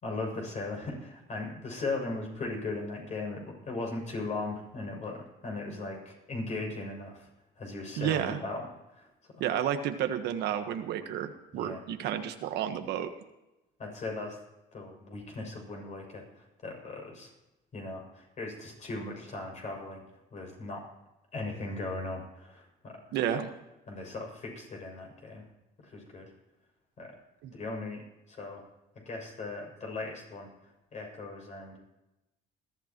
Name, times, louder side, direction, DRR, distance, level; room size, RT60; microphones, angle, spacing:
voice 1, 0.0-7.2 7.6-8.6 9.0-9.1 9.3-9.4 11.5-11.8 13.8-14.4 14.7-16.2 16.6-17.3 17.7-20.0 20.3-20.8 21.3-23.0 23.9-25.4 25.8-26.3 27.0-27.1 27.5-28.0 28.3-28.6 29.0-30.5 30.9-31.8, left 2 dB, 45° left, 0 dB, 6.6 m, -38 dB
voice 2, 8.0-8.4 9.4-13.1 23.1-23.5 27.4-27.5, right 10 dB, 80° right, 7 dB, 1.4 m, -31 dB
20.5 x 14.0 x 3.1 m, 0.97 s
cardioid pair, 110°, 17 cm